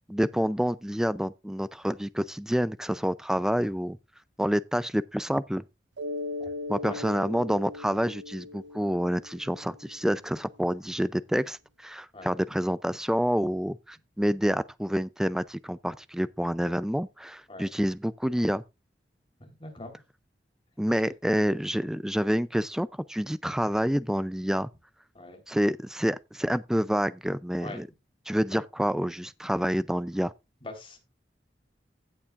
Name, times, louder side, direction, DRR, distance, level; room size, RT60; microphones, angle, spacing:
voice 1, 0.1-4.0 4.4-5.6 6.7-18.6 20.8-24.7 25.5-27.9 28.3-30.3, equal, 5° right, 0.4 m, -28 dB
Mallet percussion, 6.0-10.4, left 2 dB, 85° right, 0.7 m, -39 dB
voice 2, 19.4-20.0 25.2-25.4 27.6-27.8 28.5-28.6 30.6-31.0, left 2 dB, 30° left, 3.6 m, -42 dB
16.0 x 7.1 x 2.5 m
head